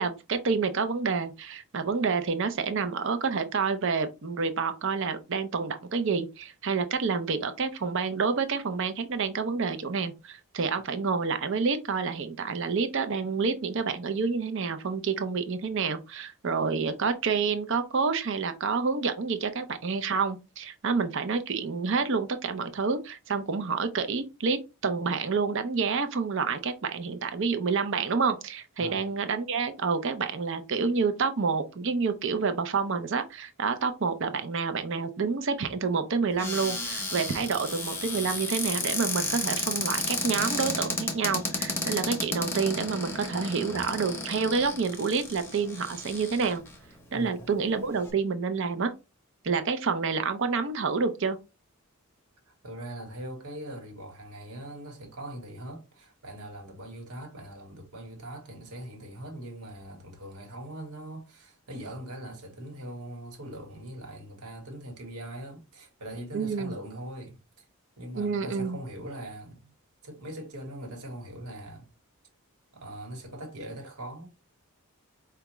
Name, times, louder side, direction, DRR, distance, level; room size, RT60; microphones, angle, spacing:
voice 1, 0.0-46.6 47.1-48.9 49.4-51.4 66.3-66.7 68.1-68.8, right 5 dB, 55° right, 0.6 m, -28 dB
Cupboard open or close, 36.4-46.7 47.4-47.5 47.8-48.1, left 2 dB, 10° left, 0.7 m, -32 dB
voice 2, 47.1-47.5 52.5-67.7 68.0-69.7 70.0-71.9 72.7-74.3, right 1 dB, 85° right, 1.3 m, -41 dB
4.8 x 2.3 x 3.0 m
head